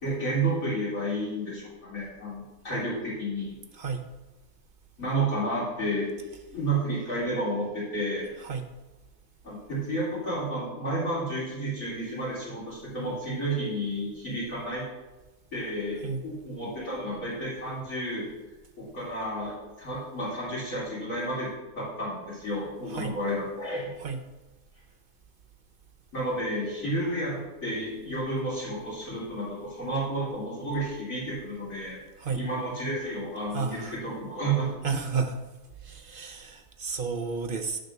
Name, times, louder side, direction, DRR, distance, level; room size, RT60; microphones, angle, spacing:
voice 1, 0.0-3.5 5.0-6.1 6.5-8.3 9.4-14.8 15.5-18.3 18.8-21.5 21.8-23.9 26.1-32.0 32.4-34.7, right 1 dB, 65° left, -8 dB, 4.0 m, -31 dB
voice 2, 33.5-34.0 34.8-35.4 35.8-37.8, right 5 dB, 50° right, 6 dB, 0.7 m, -31 dB
11.5 x 3.9 x 6.6 m, 1.2 s
omnidirectional pair, 1.5 m